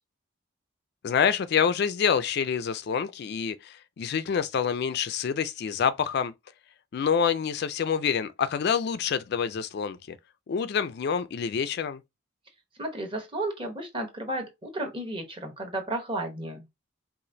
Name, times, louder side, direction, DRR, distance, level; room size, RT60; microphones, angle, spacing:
voice 1, 1.0-6.3 6.9-10.2 10.5-12.0, left 7 dB, 55° left, 0.4 m, -27 dB
voice 2, 12.8-16.7, right 1 dB, 25° right, 1.1 m, -33 dB
4.9 x 2.4 x 2.6 m
head